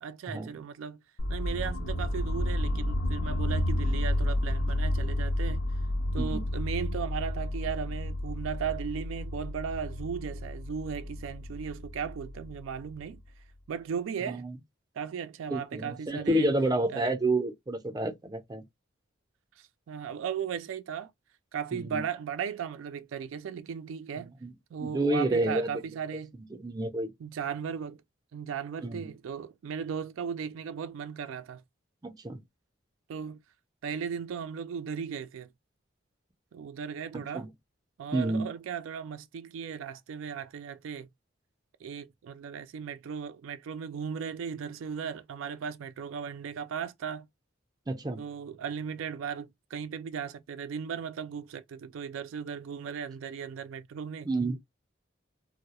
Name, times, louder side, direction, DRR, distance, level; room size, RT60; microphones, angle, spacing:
voice 1, 0.0-1.0 1.3-5.6 6.1-13.2 13.7-14.4 15.0-16.5 16.9-17.1 19.6-21.1 21.5-24.3 24.7-26.4 27.2-28.0 28.3-31.6 33.1-33.4 33.8-35.5 36.5-37.5 38.0-41.1 41.8-47.3 48.2-54.3, right 7 dB, 85° right, 0.3 m, -36 dB
sound 1, 1.2-13.1, left 1 dB, 90° left, 0.5 m, -31 dB
voice 2, 14.3-14.6 15.5-18.6 21.7-22.0 24.4-24.5 24.8-25.7 26.5-27.1 28.8-29.1 32.0-32.4 37.1-37.5 38.1-38.5 47.9-48.2 54.3-54.6, right 1 dB, 20° right, 0.4 m, -29 dB
2.2 x 2.0 x 2.8 m
head